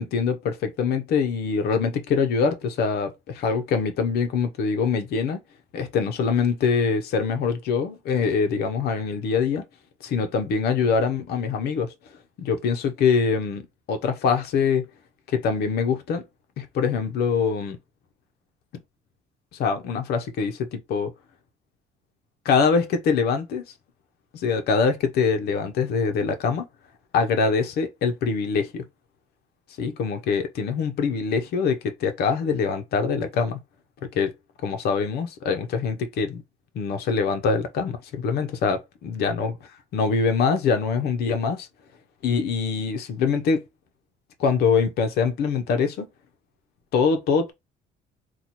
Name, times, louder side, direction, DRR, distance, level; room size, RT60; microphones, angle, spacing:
voice 1, 0.0-5.4 5.7-9.6 10.0-11.9 12.4-13.6 13.9-14.8 15.3-16.2 16.6-17.8 19.5-21.1 22.4-23.6 24.3-26.7 27.1-28.8 29.8-33.6 34.0-34.3 34.6-36.4 36.7-39.5 39.9-41.7 42.2-43.6 44.4-46.1 46.9-47.5, left 5 dB, 70° left, 0.8 m, -24 dB
3.0 x 2.3 x 4.1 m
cardioid pair, 110°, 17 cm